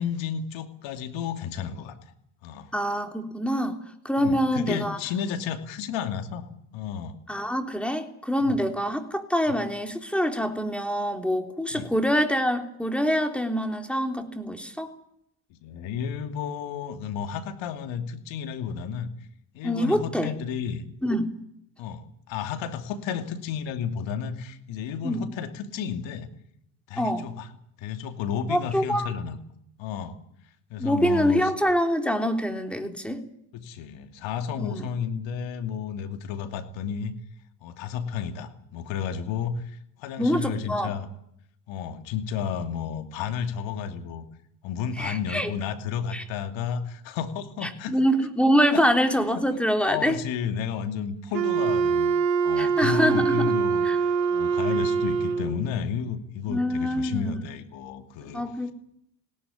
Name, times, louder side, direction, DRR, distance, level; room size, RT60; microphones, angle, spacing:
voice 1, 0.0-2.1 2.4-2.7 4.2-6.5 6.7-7.2 8.4-8.6 9.5-9.6 11.7-11.9 15.5-19.1 19.5-20.8 21.8-26.3 26.9-27.5 27.8-29.4 29.8-30.1 30.7-31.5 33.5-37.1 37.6-41.1 41.7-44.3 44.6-48.0 48.7-48.8 49.9-52.2 52.4-58.4, left 7 dB, 65° left, 7 dB, 2.7 m, -32 dB
voice 2, 2.7-3.8 4.0-5.0 7.3-14.9 19.6-20.3 21.0-21.3 25.0-25.2 27.0-27.3 28.5-29.1 30.8-33.2 34.6-34.9 40.2-40.9 45.0-45.5 46.1-46.2 47.9-50.2 52.6-53.5 53.8-54.0 56.5-57.3 58.2-58.7, equal, ahead, 5 dB, 3.5 m, -25 dB
Wind instrument woodwind instrument, 51.3-55.6, right 5 dB, 85° right, 2.3 m, -24 dB
20.0 x 17.5 x 10.0 m, 0.75 s
hypercardioid pair, 75°, 48 cm